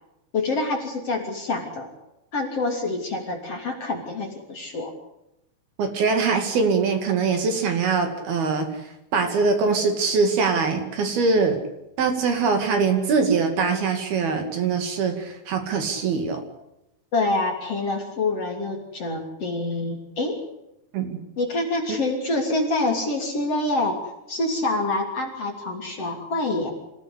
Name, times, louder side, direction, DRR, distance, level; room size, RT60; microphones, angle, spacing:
voice 1, 0.3-1.9 2.3-4.9 17.1-20.4 21.4-24.0 24.3-26.7, left 2 dB, 35° left, 1 dB, 3.5 m, -26 dB
voice 2, 5.8-8.7 9.1-11.6 12.0-16.4 20.9-21.2, right 4 dB, 60° right, 6 dB, 4.1 m, -22 dB
26.5 x 16.5 x 8.4 m, 0.88 s
omnidirectional pair, 5.3 m